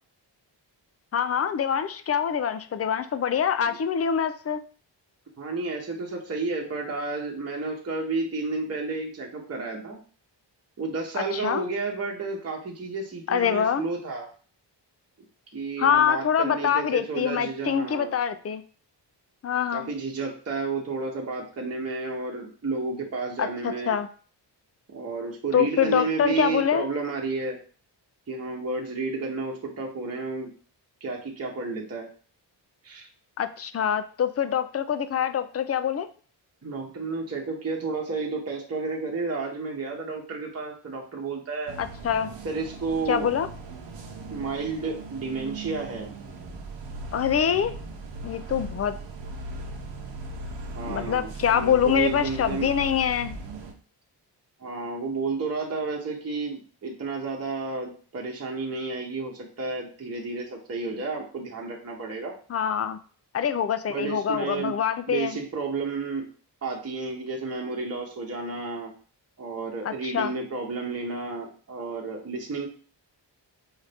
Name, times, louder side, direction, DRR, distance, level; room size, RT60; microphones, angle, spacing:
voice 1, 1.1-4.6 11.3-11.7 13.3-13.9 15.8-18.6 19.4-19.9 23.4-24.1 25.5-26.9 33.4-36.1 41.8-42.3 43.1-43.5 47.1-47.7 48.2-49.0 50.8-53.4 62.5-63.0 63.3-65.4 69.8-70.3, left 8 dB, 35° left, 10 dB, 0.4 m, -25 dB
voice 2, 5.4-10.0 10.8-14.3 15.5-18.1 19.7-24.0 24.9-27.6 28.3-30.5 31.0-32.1 32.8-33.1 36.6-41.8 42.4-43.3 44.3-46.1 50.7-52.7 54.6-62.3 63.9-64.7 65.1-66.3 66.6-68.9 69.4-72.7, right 3 dB, 35° right, -1 dB, 1.0 m, -31 dB
sound 1, 41.7-53.7, right 2 dB, 80° right, 0.9 m, -38 dB
4.9 x 2.7 x 3.4 m, 0.41 s
wide cardioid pair, 105°, 43 cm